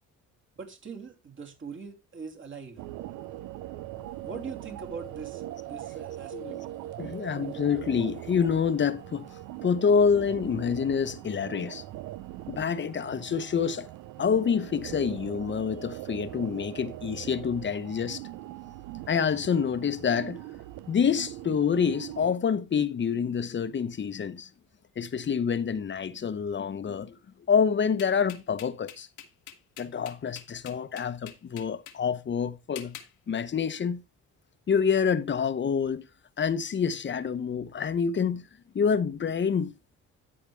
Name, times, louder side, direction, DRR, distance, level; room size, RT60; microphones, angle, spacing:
voice 1, 0.6-2.8 4.2-6.5, right 5 dB, 40° right, 2.6 m, -42 dB
sound 1, 2.8-22.3, right 14 dB, 90° right, 0.6 m, -41 dB
voice 2, 7.0-9.3 9.6-11.8 12.5-13.9 14.2-18.2 19.1-20.4 20.9-24.5 25.0-27.2 27.5-29.1 29.8-33.0 33.3-34.0 34.7-36.0 36.4-38.5 38.7-39.7, left 6 dB, 40° left, 0.9 m, -27 dB
sound 2, 28.0-32.0 32.8-33.1, left 10 dB, 85° left, 1.3 m, -45 dB
14.0 x 5.0 x 3.3 m
cardioid pair, 90°, 30 cm